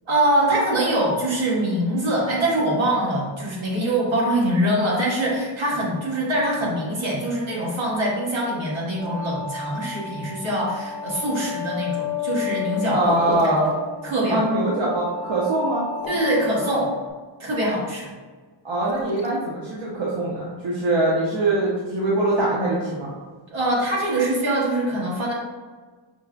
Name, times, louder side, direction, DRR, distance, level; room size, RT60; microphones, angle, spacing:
voice 1, 0.1-13.4 14.0-14.4 16.1-16.9 17.4-18.1 23.5-25.3, right 1 dB, 90° right, -5 dB, 1.3 m, -23 dB
silver tone, 9.0-17.1, left 8 dB, 15° left, 0.6 m, -33 dB
voice 2, 12.9-13.7 14.3-15.9 18.6-23.1, right 2 dB, 75° right, -6 dB, 0.8 m, -23 dB
sound 1, 13.0-13.7 15.9-16.5 18.7-19.3, left 3 dB, 75° left, 0.6 m, -35 dB
5.4 x 2.2 x 2.4 m, 1.4 s
wide cardioid pair, 115°, 45 cm